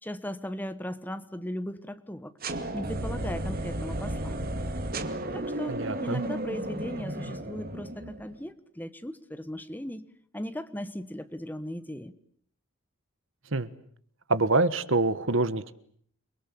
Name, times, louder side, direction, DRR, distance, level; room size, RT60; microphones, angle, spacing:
voice 1, 0.0-2.3 2.7-4.6 5.3-10.0 10.3-12.1, equal, 10° left, 11 dB, 1.3 m, -37 dB
sound 1, 2.4-8.4, right 1 dB, 45° right, 2.2 m, -33 dB
voice 2, 5.7-6.2 13.5-13.7 14.3-15.7, right 2 dB, 65° right, 14 dB, 1.4 m, -25 dB
29.5 x 22.0 x 8.5 m, 0.62 s
head